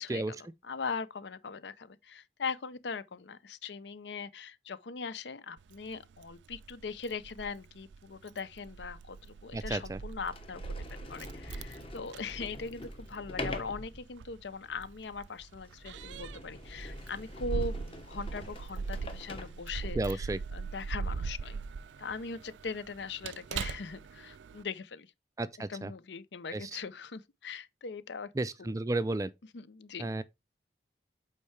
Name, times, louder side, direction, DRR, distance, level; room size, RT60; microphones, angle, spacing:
voice 1, 0.0-20.2 20.5-21.6 22.0-25.1 25.7-28.3 28.6-28.7 29.5-30.1, left 5 dB, 75° left, 0.6 m, -40 dB
Keys jangling, 5.6-24.6, right 5 dB, 85° right, 0.4 m, -41 dB
Sliding door, 8.8-8.9 9.7-9.8 10.2-20.2, left 1 dB, 30° left, 1.1 m, -45 dB
voice 2, 9.5-10.0 20.0-20.4 25.4-25.9 26.5-26.7 28.4-29.3 30.0-30.2, right 2 dB, 20° right, 0.4 m, -32 dB
8.4 x 4.6 x 3.3 m
head